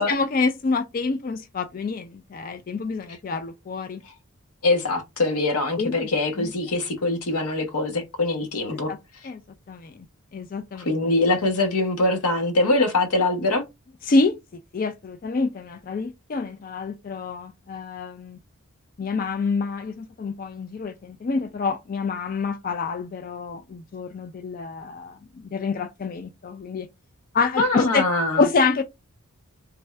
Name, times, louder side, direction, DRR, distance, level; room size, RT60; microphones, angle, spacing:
voice 1, 0.0-4.0 5.8-6.1 6.4-6.5 8.7-9.0 9.2-9.4 9.7-9.9 10.3-10.9 14.1-14.4 14.7-18.4 19.0-26.9 27.3-28.0 28.4-28.8, left 4 dB, 40° left, 0.3 m, -27 dB
voice 2, 4.6-8.9 10.8-13.7 27.6-28.5, left 2 dB, 90° left, 1.0 m, -23 dB
3.4 x 2.3 x 3.1 m
head